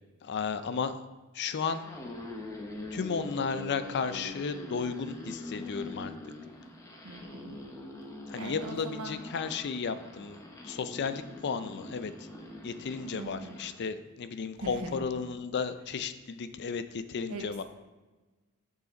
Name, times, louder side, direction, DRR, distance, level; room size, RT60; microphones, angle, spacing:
voice 1, 0.2-1.0 1.3-1.8 2.9-6.1 8.3-12.3 12.6-17.6, left 5 dB, 50° left, 11 dB, 0.4 m, -34 dB
sound 1, 1.5-13.8, left 2 dB, 15° left, 0.8 m, -43 dB
voice 2, 7.0-7.6 8.3-9.2 13.1-13.5 14.6-15.0 17.3-17.6, right 2 dB, 70° right, 2 dB, 1.1 m, -40 dB
6.5 x 5.8 x 3.9 m, 1.2 s
head